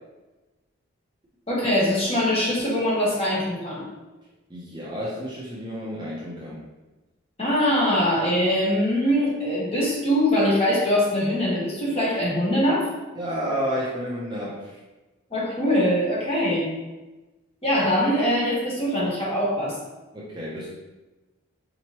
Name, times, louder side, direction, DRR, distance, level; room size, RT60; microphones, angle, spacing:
voice 1, 1.5-3.9 7.4-12.9 15.3-16.7 17.6-19.8, equal, 30° left, -6 dB, 1.0 m, -22 dB
voice 2, 4.5-6.6 13.2-14.8 20.1-20.7, equal, 20° right, -7 dB, 0.5 m, -31 dB
4.2 x 2.9 x 2.9 m, 1.1 s
head